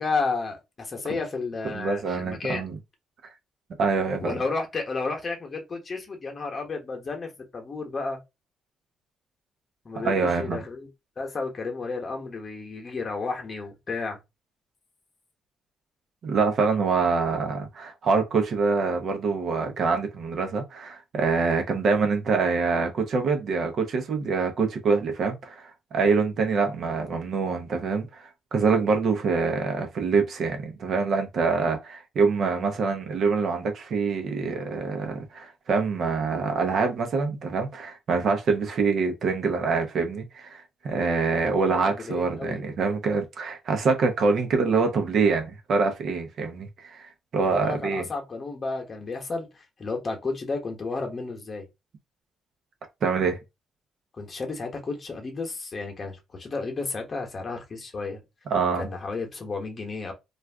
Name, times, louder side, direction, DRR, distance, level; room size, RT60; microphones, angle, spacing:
voice 1, 0.0-2.7 4.2-8.2 9.8-10.9 11.2-14.2 41.4-42.6 47.4-51.6 54.2-58.2 58.8-60.1, left 3 dB, 40° left, 0.9 m, -32 dB
voice 2, 1.7-2.8 3.8-4.4 10.0-10.6 16.2-48.1 53.0-53.4 58.5-58.9, right 4 dB, 60° right, 0.7 m, -25 dB
2.4 x 2.3 x 3.4 m
cardioid pair, 90°, 0 cm